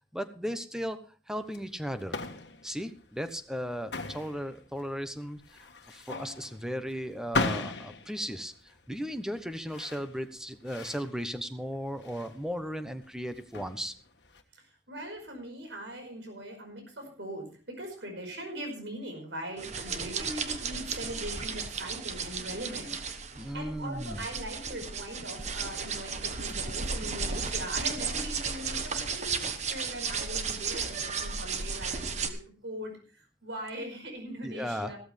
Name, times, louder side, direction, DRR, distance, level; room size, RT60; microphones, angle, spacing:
voice 1, 0.1-1.0 1.3-2.2 2.6-5.6 5.9-8.5 8.9-13.9 23.3-24.2 29.4-29.5 34.4-34.9, equal, 5° right, 9 dB, 1.0 m, -36 dB
sound 1, 1.4-14.4, left 3 dB, 70° left, 1.5 m, -38 dB
voice 2, 14.6-22.9 23.4-32.9 33.4-35.0, right 1 dB, 80° right, 3 dB, 5.2 m, -41 dB
sound 2, 19.6-32.3, right 5 dB, 40° right, 1.2 m, -34 dB
15.0 x 13.5 x 3.4 m, 0.37 s
head